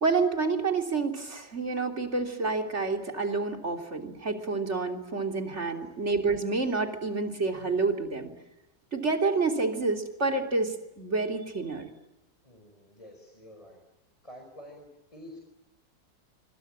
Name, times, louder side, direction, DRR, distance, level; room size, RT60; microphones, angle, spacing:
voice 1, 0.0-8.3 8.9-11.9, right 3 dB, 35° right, 4 dB, 3.4 m, -28 dB
voice 2, 12.4-13.8 14.2-15.4, equal, 15° left, 3 dB, 5.1 m, -49 dB
26.5 x 25.0 x 8.8 m, 0.94 s
omnidirectional pair, 2.0 m